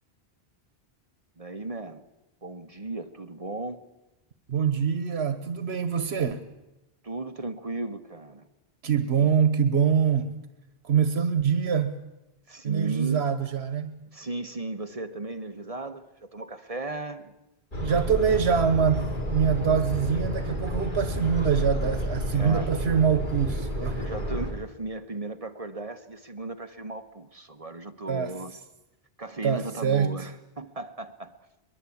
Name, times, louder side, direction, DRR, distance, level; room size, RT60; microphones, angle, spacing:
voice 1, 1.4-2.0 2.4-3.8 7.0-8.5 9.1-9.3 12.5-13.3 14.1-17.3 22.3-22.7 23.9-28.5 29.2-31.3, right 2 dB, 35° right, 8 dB, 1.2 m, -36 dB
voice 2, 4.5-6.4 8.8-10.3 10.8-11.9 12.6-14.0 17.8-24.0 28.1-28.3 29.4-30.3, right 7 dB, 85° right, 9 dB, 1.3 m, -24 dB
sound 1, 17.7-24.5, equal, 50° left, 3.9 m, -30 dB
22.5 x 21.5 x 8.5 m, 1.0 s
omnidirectional pair, 1.1 m